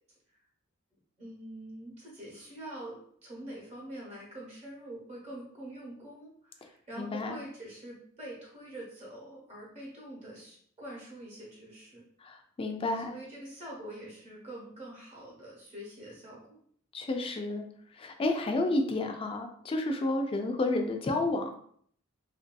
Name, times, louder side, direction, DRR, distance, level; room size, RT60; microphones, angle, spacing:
voice 1, 1.2-12.0 13.1-16.6, right 1 dB, 30° right, -5 dB, 1.0 m, -45 dB
voice 2, 7.0-7.4 12.2-13.1 16.9-17.6 17.9-21.5, left 2 dB, 25° left, 4 dB, 0.3 m, -31 dB
3.4 x 2.6 x 2.2 m, 0.62 s
head